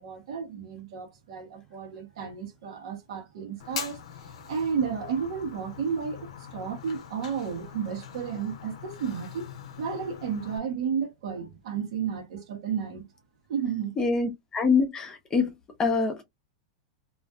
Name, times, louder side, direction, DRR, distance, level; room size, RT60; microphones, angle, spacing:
voice 1, 0.0-4.0 4.5-13.1 13.5-13.9, right 7 dB, 70° right, 1.0 m, -32 dB
Fire, 3.6-10.6, left 8 dB, 80° left, 0.6 m, -42 dB
voice 2, 14.0-15.5 15.8-16.2, left 4 dB, 20° left, 0.7 m, -25 dB
2.4 x 2.4 x 2.3 m
hypercardioid pair, 135°, 3 cm